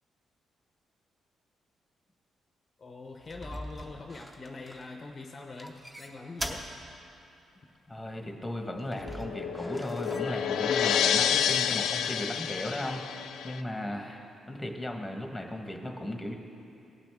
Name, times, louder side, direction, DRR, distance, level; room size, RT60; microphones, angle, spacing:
voice 1, 2.8-6.7, left 3 dB, 35° left, 3 dB, 0.6 m, -43 dB
sound 1, 3.2-5.1 5.6-6.7 7.0-7.1 8.8-10.3, equal, 15° right, 0.8 m, -41 dB
voice 2, 7.9-16.3, left 1 dB, 5° left, 3 dB, 1.2 m, -36 dB
sound 2, 8.8-13.6, left 9 dB, 80° left, 0.3 m, -29 dB
18.0 x 6.0 x 3.5 m, 2.8 s
cardioid pair, 95°, 0 cm